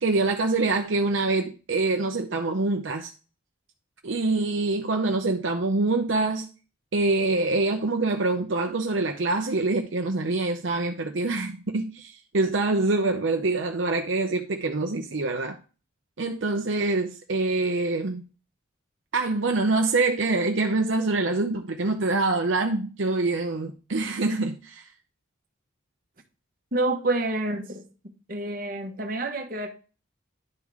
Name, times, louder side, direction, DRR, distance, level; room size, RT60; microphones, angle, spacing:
voice 1, 0.0-3.1 4.0-6.5 6.9-15.6 16.2-18.2 19.1-24.9, right 3 dB, 65° right, 0.7 m, -25 dB
voice 2, 26.7-27.9 28.3-29.7, right 2 dB, 45° right, 1.2 m, -28 dB
10.5 x 3.7 x 4.8 m
head